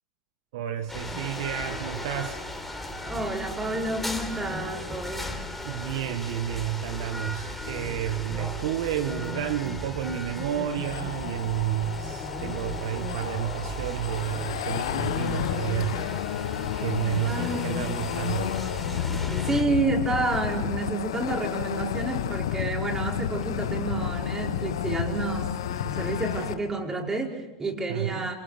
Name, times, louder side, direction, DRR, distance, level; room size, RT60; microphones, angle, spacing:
voice 1, 0.5-2.4 5.6-16.0 16.4-18.5 27.9-28.3, right 11 dB, 65° right, 8 dB, 1.4 m, -31 dB
sound 1, 0.9-19.6, left 1 dB, 5° left, 3.7 m, -36 dB
voice 2, 3.0-5.3 17.2-17.8 19.4-28.3, right 3 dB, 15° right, 1 dB, 5.1 m, -30 dB
sound 2, 10.7-26.5, left 11 dB, 75° left, 1.1 m, -31 dB
27.5 x 27.5 x 5.1 m, 1.1 s
hypercardioid pair, 95°, 3 cm